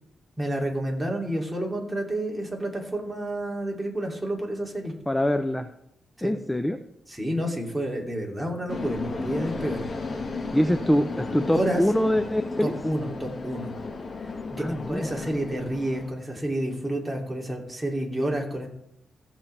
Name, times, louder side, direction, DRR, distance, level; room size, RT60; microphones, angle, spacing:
voice 1, 0.4-4.9 6.2-6.3 7.1-9.9 10.3-10.5 11.4-11.8 12.6-13.7 14.2-18.7, right 1 dB, 10° right, 0 dB, 2.6 m, -30 dB
voice 2, 5.1-5.7 6.2-6.8 10.5-12.7 14.6-15.2, equal, 10° left, 8 dB, 0.6 m, -24 dB
sound 1, 8.7-16.1, left 3 dB, 45° left, 1.6 m, -34 dB
15.5 x 7.2 x 3.3 m, 0.75 s
cardioid pair, 80°, 0 cm